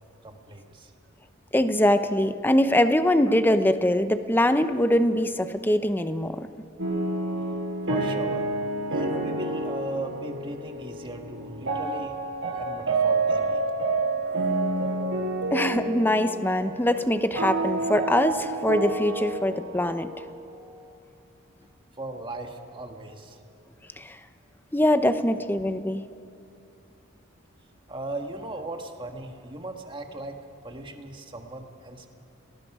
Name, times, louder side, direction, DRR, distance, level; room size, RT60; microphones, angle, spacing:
voice 1, 0.2-0.9 7.9-8.5 8.9-12.1 12.5-13.6 22.0-23.4 27.9-32.1, right 2 dB, 25° right, 4 dB, 1.6 m, -37 dB
voice 2, 1.5-6.5 15.5-20.1 24.0-24.2 24.7-26.1, left 1 dB, 10° left, 10 dB, 0.8 m, -23 dB
sound 1, 6.8-20.8, right 2 dB, 65° right, 5.6 m, -29 dB
30.0 x 19.5 x 4.9 m, 2.7 s
head